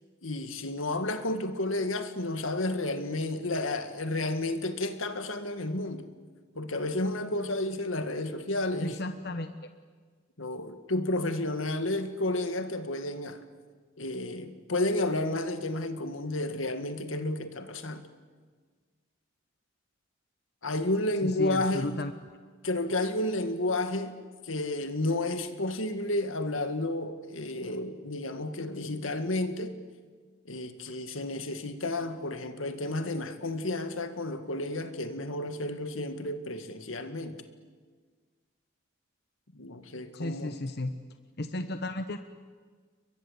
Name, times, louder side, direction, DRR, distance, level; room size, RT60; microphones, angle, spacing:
voice 1, 0.2-6.1 6.6-9.0 10.4-13.4 14.0-18.0 20.6-22.0 22.6-24.2 24.4-29.8 30.5-37.4 39.5-40.5, left 2 dB, 85° left, 2.0 m, -31 dB
voice 2, 8.8-9.5 21.2-22.1 40.1-40.9 41.4-42.2, left 2 dB, 50° left, 1.1 m, -34 dB
30.0 x 23.0 x 8.2 m
head